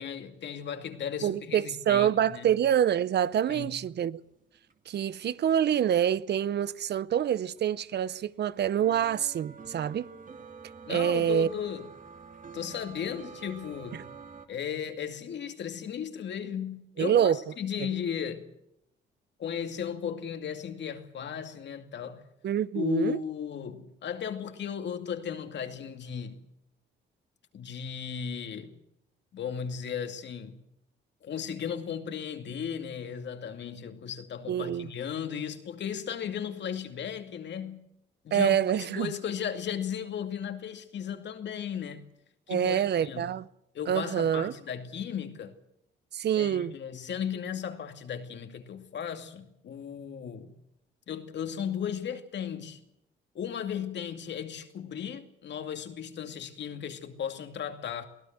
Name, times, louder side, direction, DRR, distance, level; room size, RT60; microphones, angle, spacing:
voice 1, 0.0-2.5 3.5-3.8 10.8-11.9 12.5-14.0 14.5-18.5 19.4-22.3 22.7-26.5 27.5-28.7 29.3-30.6 31.2-37.8 38.2-42.1 42.5-43.3 43.7-45.6 46.3-50.6 51.1-52.8 53.3-58.1, left 8 dB, 65° left, 2.4 m, -36 dB
voice 2, 1.2-4.2 4.9-10.1 10.9-11.5 17.0-17.4 17.8-17.9 22.4-23.2 34.5-34.9 38.3-39.1 42.5-43.5 43.9-44.5 46.1-46.7, right 9 dB, 60° right, 0.8 m, -26 dB
sound 1, 3.4-6.7 7.0-14.5, right 5 dB, 40° right, 2.6 m, -48 dB
24.0 x 17.0 x 7.7 m
cardioid pair, 90°, 20 cm